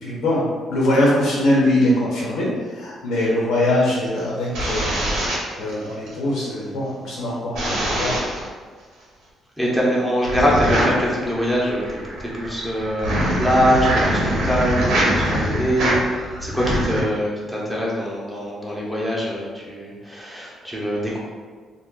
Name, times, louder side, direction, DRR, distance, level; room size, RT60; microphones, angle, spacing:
voice 1, 0.0-8.2, left 1 dB, 85° left, -5 dB, 1.1 m, -22 dB
sound 1, 4.2-6.1 7.5-8.5 10.2-17.0, right 1 dB, 85° right, 0.9 m, -23 dB
voice 2, 9.6-21.2, equal, 5° right, -5 dB, 0.8 m, -23 dB
2.4 x 2.2 x 3.7 m, 1.5 s
cardioid pair, 90°, 0 cm